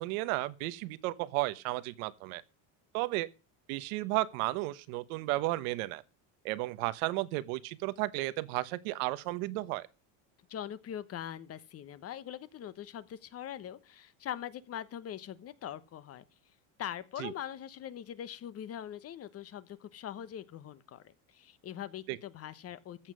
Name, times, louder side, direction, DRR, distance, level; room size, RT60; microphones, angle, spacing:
voice 1, 0.0-2.4 2.9-3.3 3.7-6.0 6.4-9.9 17.2-17.3 22.1-22.2, right 19 dB, 80° right, 1.2 m, -33 dB
voice 2, 10.5-16.2 16.8-23.1, left 10 dB, 35° left, 1.1 m, -42 dB
14.5 x 7.5 x 6.2 m
cardioid pair, 135°, 41 cm